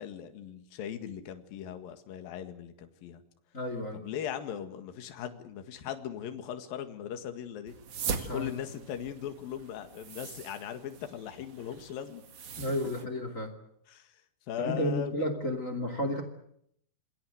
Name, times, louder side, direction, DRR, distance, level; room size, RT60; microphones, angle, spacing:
voice 1, 0.0-3.2 3.9-7.7 8.3-12.2 13.9-14.2 14.5-15.3, left 9 dB, 55° left, 7 dB, 3.0 m, -39 dB
voice 2, 3.5-4.0 8.1-8.5 12.6-13.5 14.6-16.2, left 1 dB, 25° left, 8 dB, 1.8 m, -32 dB
sound 1, 7.7-13.0, right 6 dB, 65° right, 1.5 m, -41 dB
27.0 x 21.0 x 7.9 m, 0.73 s
omnidirectional pair, 5.7 m